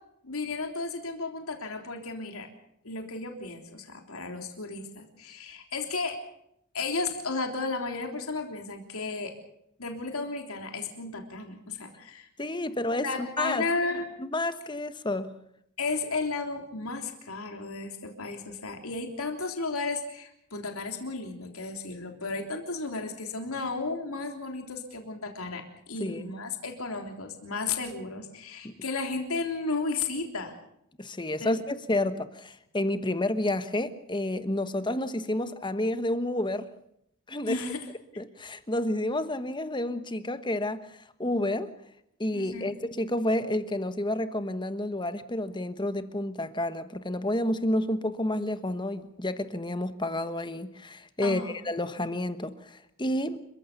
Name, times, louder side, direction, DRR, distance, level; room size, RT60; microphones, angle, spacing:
voice 1, 0.2-2.5 2.8-6.2 6.7-9.3 9.8-12.3 13.0-14.0 15.8-30.5 31.4-31.5 37.4-37.8 42.3-42.7 51.2-51.6, left 3 dB, 70° left, 3.5 m, -34 dB
voice 2, 12.4-13.7 14.2-15.3 26.0-26.3 28.6-28.8 31.0-36.7 37.3-37.6 38.2-41.7 42.2-53.4, left 1 dB, 20° left, 1.3 m, -30 dB
29.5 x 15.0 x 6.8 m
head